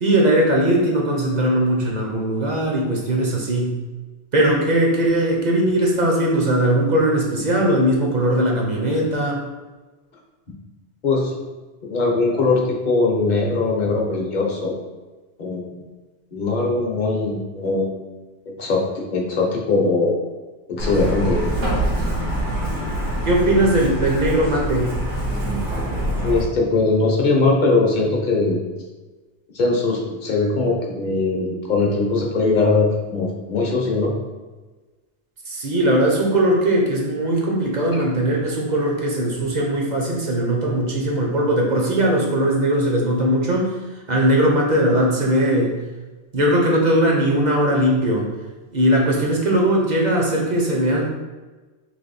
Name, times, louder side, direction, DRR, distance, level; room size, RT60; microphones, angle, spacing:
voice 1, 0.0-3.7 4.3-9.4 23.2-25.0 35.5-43.8 44.1-45.8 46.3-48.3 48.7-51.1, right 1 dB, 45° right, -1 dB, 0.7 m, -19 dB
voice 2, 11.9-12.6 12.9-14.7 15.4-15.8 16.3-17.9 18.6-20.1 20.7-21.4 26.2-28.6 29.5-34.1 37.9-38.1, left 3 dB, 45° left, -1 dB, 0.8 m, -20 dB
Truck, 20.8-26.4, right 1 dB, 80° right, 1.3 m, -24 dB
3.3 x 3.0 x 4.0 m, 1.3 s
omnidirectional pair, 1.2 m